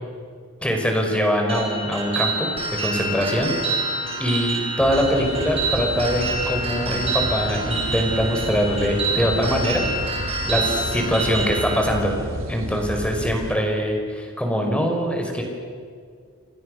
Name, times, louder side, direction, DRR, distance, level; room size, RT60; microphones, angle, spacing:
voice 1, 0.6-3.5 4.2-9.8 10.2-12.1 12.5-15.4, equal, 5° left, 2 dB, 5.2 m, -23 dB
sound 1, 1.5-11.8, right 3 dB, 30° right, 6.5 m, -27 dB
sound 2, 4.8-13.6, right 1 dB, 65° right, 3.2 m, -32 dB
28.5 x 28.0 x 6.6 m, 2.1 s
head